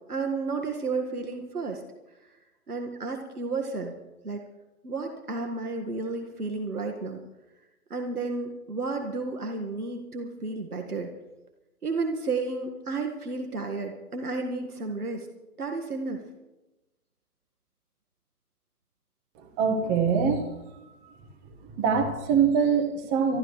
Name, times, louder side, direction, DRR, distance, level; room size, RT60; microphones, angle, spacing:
voice 1, 0.1-1.8 2.7-3.9 4.2-4.4 4.8-7.2 7.9-11.1 11.8-15.3 15.6-16.2, right 3 dB, 80° right, 3 dB, 2.0 m, -32 dB
voice 2, 19.4-20.5 21.8-23.4, right 6 dB, 20° right, 3 dB, 1.6 m, -24 dB
26.0 x 13.0 x 3.3 m, 1.1 s
figure-of-eight pair, 135°, 45 cm